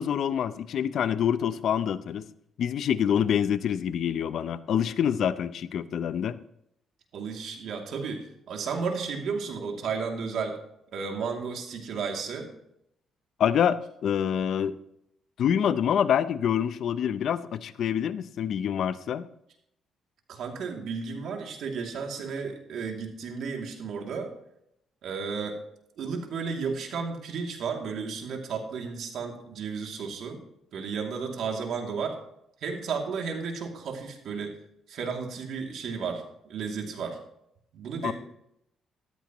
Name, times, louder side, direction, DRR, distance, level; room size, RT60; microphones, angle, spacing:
voice 1, 0.0-2.3 2.6-6.4 13.4-14.8 15.4-19.2 38.0-38.1, left 9 dB, 65° left, 14 dB, 0.6 m, -26 dB
voice 2, 7.1-10.6 10.9-12.5 20.3-24.3 25.0-25.6 26.0-30.4 30.7-32.2 32.6-34.6 34.9-37.2 37.7-38.1, right 5 dB, 70° right, 2 dB, 2.7 m, -33 dB
14.5 x 13.0 x 3.1 m, 0.77 s
cardioid pair, 90°, 0 cm